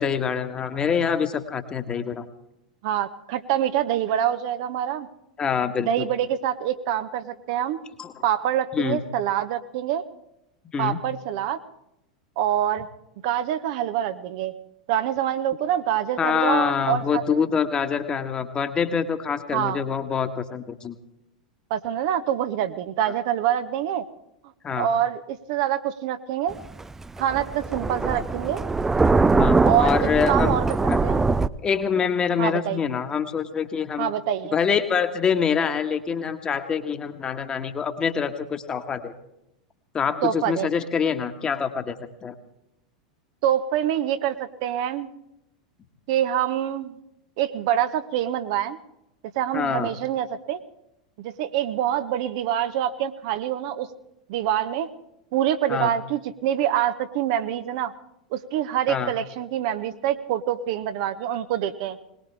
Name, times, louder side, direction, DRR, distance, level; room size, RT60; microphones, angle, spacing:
voice 1, 0.0-2.3 5.4-6.1 8.0-8.2 8.7-9.0 10.7-11.0 16.2-21.0 23.0-23.1 24.6-24.9 29.3-30.6 30.9-31.0 31.6-34.1 34.5-39.1 39.9-42.0 42.2-42.3 49.5-49.9 55.7-55.9 58.9-59.1, left 6 dB, 20° left, 7 dB, 1.5 m, -25 dB
voice 2, 2.8-5.1 5.8-7.8 8.2-10.0 10.8-11.6 12.4-12.9 13.2-14.5 14.9-17.4 19.5-19.8 21.7-24.0 24.8-26.6 27.2-28.6 29.6-30.6 31.0-31.2 32.4-32.8 34.0-34.6 40.2-40.7 43.4-45.1 46.1-47.0 47.4-48.8 49.4-50.6 51.2-53.9 54.3-54.9 55.3-57.9 58.3-62.0, right 11 dB, 50° right, 10 dB, 1.0 m, -25 dB
Thunder, 26.5-31.5, right 3 dB, 10° right, 0.5 m, -21 dB
21.0 x 20.0 x 3.4 m, 0.84 s
figure-of-eight pair, 90°, 4 cm